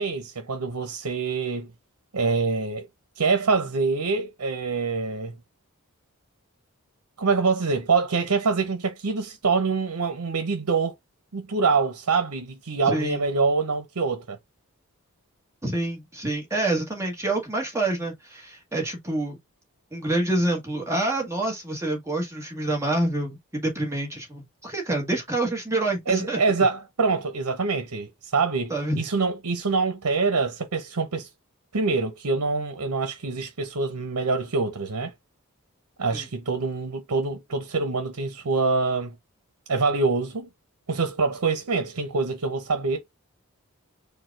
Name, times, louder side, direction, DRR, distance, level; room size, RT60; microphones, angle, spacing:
voice 1, 0.0-1.7 2.1-2.9 3.2-5.4 7.2-10.9 11.3-14.4 26.1-31.3 31.7-35.1 36.0-39.2 39.7-40.5 40.9-43.0, right 4 dB, 85° right, 0.8 m, -25 dB
voice 2, 12.9-13.2 15.6-19.4 19.9-26.4 28.7-29.0 36.1-36.2, right 2 dB, 15° right, 1.3 m, -27 dB
4.6 x 2.3 x 4.6 m
head